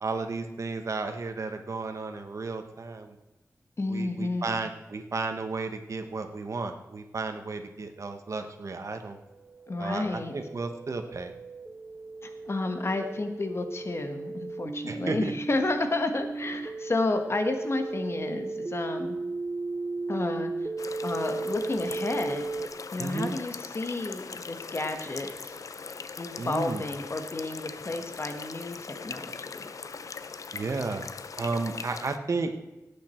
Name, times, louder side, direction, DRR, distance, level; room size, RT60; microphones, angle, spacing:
voice 1, 0.0-3.1 3.9-9.2 9.8-11.3 14.9-15.3 23.0-23.3 26.4-26.8 30.5-31.0 31.4-32.5, right 3 dB, 60° right, 6 dB, 1.2 m, -33 dB
voice 2, 3.8-4.6 9.7-10.3 12.2-19.2 20.1-20.7 21.0-22.5 22.9-25.5 26.2-29.7, left 2 dB, 50° left, 6 dB, 1.5 m, -31 dB
sound 1, 9.4-22.7, right 3 dB, 25° right, 0.7 m, -35 dB
sound 2, 20.8-32.2, left 5 dB, 75° left, 0.6 m, -41 dB
17.5 x 8.5 x 4.5 m, 0.99 s
wide cardioid pair, 105°, 6 cm